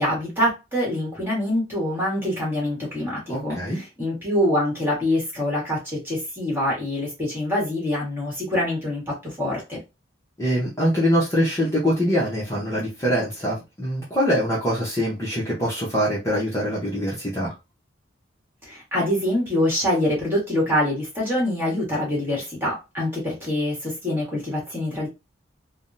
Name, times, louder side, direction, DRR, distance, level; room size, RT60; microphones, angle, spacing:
voice 1, 0.0-9.8 18.6-25.1, left 1 dB, 10° right, -4 dB, 1.4 m, -25 dB
voice 2, 3.3-3.8 10.4-17.5, equal, 15° left, -6 dB, 0.9 m, -23 dB
3.5 x 2.2 x 2.6 m, 0.25 s
head